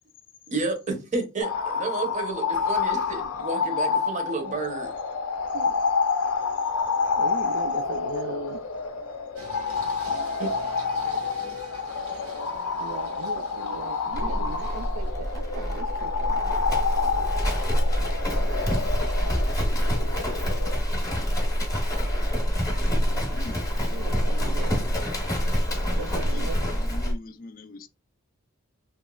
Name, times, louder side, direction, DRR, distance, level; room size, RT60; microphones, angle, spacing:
voice 1, 0.5-4.9 10.1-10.5, right 3 dB, 35° right, 0.8 m, -31 dB
sound 1, 1.4-20.8, left 5 dB, 85° left, 0.6 m, -28 dB
voice 2, 7.2-8.6 12.8-16.8 23.9-24.8 26.0-26.6, right 5 dB, 65° right, 0.3 m, -38 dB
Singing, 9.3-15.1, equal, 90° right, 1.5 m, -44 dB
Livestock farm animals working animals, 14.1-27.2, equal, 15° left, 0.9 m, -26 dB
voice 3, 23.3-23.7 25.9-27.9, left 2 dB, 40° left, 0.4 m, -42 dB
3.1 x 2.9 x 2.2 m
head